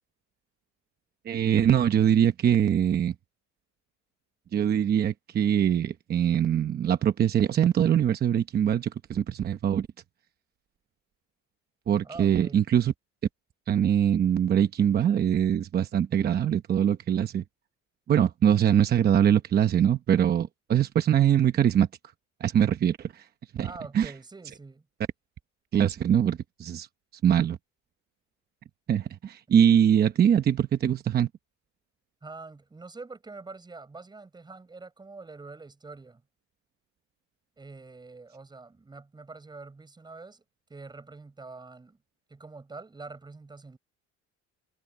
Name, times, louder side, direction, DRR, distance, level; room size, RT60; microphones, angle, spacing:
voice 1, 1.3-3.1 4.5-9.9 11.9-12.9 13.7-17.4 18.1-21.9 22.4-23.2 23.5-23.7 23.9-24.1 25.7-26.9 27.2-27.6 28.9-31.3, right 9 dB, 30° right, 0.9 m, -23 dB
voice 2, 12.0-12.7 23.6-24.9 29.5-29.6 32.2-36.2 37.6-40.4 40.7-42.0 42.3-43.8, right 3 dB, 15° right, 6.5 m, -45 dB
cardioid pair, 160°, 31 cm